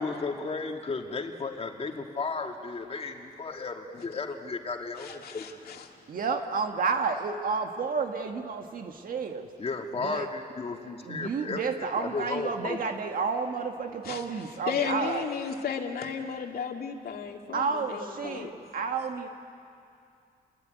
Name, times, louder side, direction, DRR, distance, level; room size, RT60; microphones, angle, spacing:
voice 1, 0.0-5.6 9.6-11.6 12.0-12.9, left 4 dB, 40° left, 3 dB, 2.5 m, -34 dB
voice 2, 5.0-5.9 14.0-18.5, left 6 dB, 75° left, 2 dB, 2.6 m, -34 dB
voice 3, 6.1-9.5 10.0-10.3 11.0-15.3 17.5-19.3, right 5 dB, 65° right, 4 dB, 1.8 m, -31 dB
29.0 x 21.5 x 9.4 m, 2.5 s
cardioid pair, 115°, 16 cm